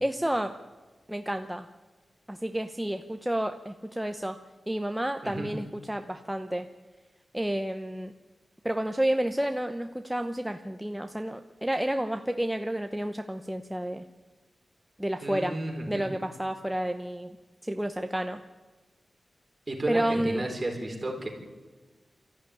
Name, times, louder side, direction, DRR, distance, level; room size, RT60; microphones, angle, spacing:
voice 1, 0.0-0.5 1.1-1.7 2.3-4.4 4.7-6.7 7.3-8.1 8.6-14.0 15.0-15.6 15.9-17.4 17.7-18.4 19.9-20.5, right 1 dB, 5° right, 6 dB, 0.8 m, -30 dB
voice 2, 15.2-16.1 19.7-21.3, right 2 dB, 30° right, 1 dB, 4.5 m, -33 dB
23.0 x 14.0 x 10.0 m, 1.3 s
wide cardioid pair, 115°, 0 cm